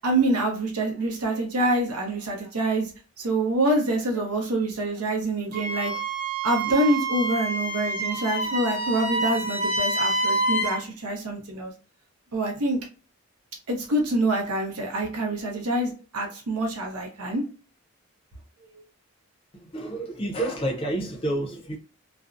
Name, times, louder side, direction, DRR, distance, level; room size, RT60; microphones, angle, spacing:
voice 1, 0.0-2.9 3.2-6.0 6.4-11.7 12.3-12.8 13.7-17.4 18.7-18.8, right 1 dB, 85° right, 1 dB, 0.7 m, -26 dB
Wind instrument woodwind instrument, 5.5-10.8, right 2 dB, 35° right, 0.8 m, -27 dB
voice 2, 19.6-21.8, right 1 dB, 25° left, 1 dB, 0.5 m, -29 dB
2.5 x 2.0 x 2.4 m, 0.36 s
head